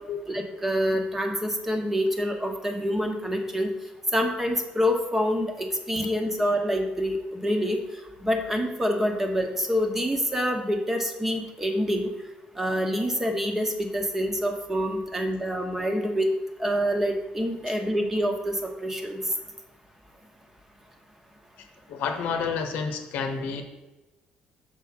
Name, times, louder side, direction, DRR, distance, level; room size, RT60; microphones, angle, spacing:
voice 1, 0.3-3.7 4.1-7.8 8.2-12.1 12.6-16.3 16.6-18.6 18.8-19.2, equal, 10° right, 4 dB, 1.0 m, -26 dB
voice 2, 21.6-23.6, left 5 dB, 90° left, 5 dB, 1.0 m, -30 dB
6.5 x 4.5 x 5.8 m, 1.1 s
cardioid pair, 135°, 3 cm